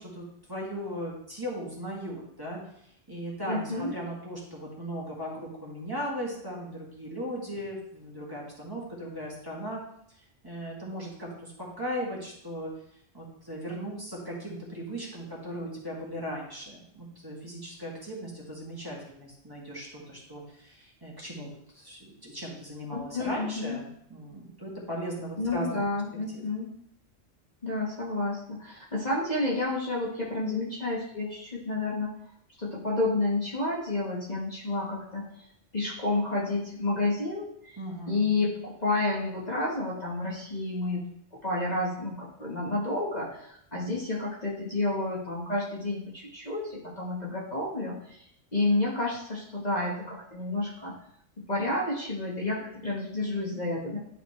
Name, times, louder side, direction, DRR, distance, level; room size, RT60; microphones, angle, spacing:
voice 1, 0.0-2.6 3.1-9.8 10.4-12.7 13.1-25.8 26.3-26.4 37.8-38.3, equal, 20° right, -5 dB, 1.9 m, -37 dB
voice 2, 3.5-3.9 22.9-23.8 25.4-26.7 27.6-32.1 32.6-35.3 35.7-37.8 38.1-41.0 41.4-48.2 48.5-51.0 51.5-54.0, left 2 dB, 35° left, -5 dB, 1.5 m, -30 dB
11.0 x 4.1 x 3.2 m, 0.72 s
omnidirectional pair, 1.3 m